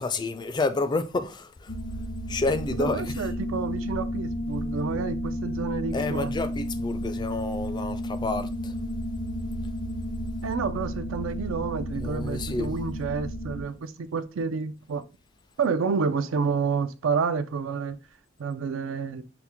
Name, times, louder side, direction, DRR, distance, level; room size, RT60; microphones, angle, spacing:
voice 1, 0.0-1.7 2.3-3.3 5.9-8.7 11.9-12.7, left 3 dB, 20° left, 0.3 m, -29 dB
sound 1, 1.7-13.6, equal, 85° left, 1.0 m, -32 dB
voice 2, 2.7-6.3 10.4-15.0 15.6-18.0 18.4-19.2, right 5 dB, 80° right, 0.4 m, -29 dB
5.8 x 2.1 x 3.5 m
head